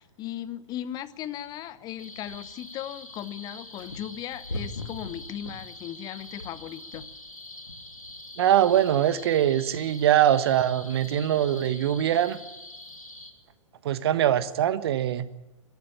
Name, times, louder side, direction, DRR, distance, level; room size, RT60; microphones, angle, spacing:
voice 1, 0.0-7.1, left 11 dB, 25° left, 1.0 m, -37 dB
sound 1, 2.0-13.3, left 2 dB, 85° left, 3.0 m, -42 dB
voice 2, 8.4-12.4 13.8-15.3, right 11 dB, 50° right, 1.3 m, -22 dB
22.5 x 13.0 x 10.0 m
figure-of-eight pair, 115°, 17 cm